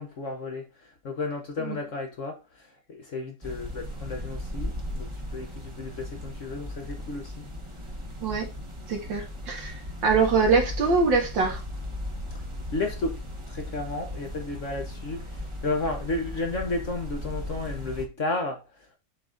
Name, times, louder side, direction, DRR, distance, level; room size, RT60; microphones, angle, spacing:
voice 1, 0.0-7.5 12.7-19.0, left 3 dB, 45° left, 1.3 m, -33 dB
sound 1, 3.4-18.1, left 1 dB, 20° right, 1.0 m, -37 dB
voice 2, 8.9-11.6, right 4 dB, 75° right, 2.6 m, -24 dB
7.4 x 3.9 x 3.8 m
omnidirectional pair, 2.0 m